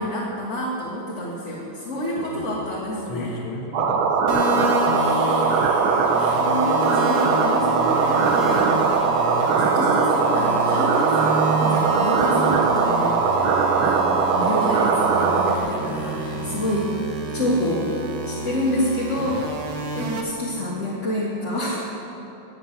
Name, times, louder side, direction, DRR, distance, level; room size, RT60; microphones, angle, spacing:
voice 1, 0.0-3.4 4.9-8.9 9.6-13.5 13.8-16.9 17.3-17.9 18.2-19.6 20.0-21.8, left 1 dB, 35° left, -5 dB, 1.8 m, -28 dB
voice 2, 2.2-4.4 6.2-6.3 11.8-12.1 16.3-17.0, left 3 dB, 75° left, 2 dB, 2.3 m, -36 dB
sound 1, 3.7-15.6, right 5 dB, 80° right, 1.7 m, -20 dB
sound 2, 4.3-20.2, right 1 dB, 60° right, 1.9 m, -29 dB
19.5 x 6.6 x 7.4 m, 2.9 s
omnidirectional pair, 2.2 m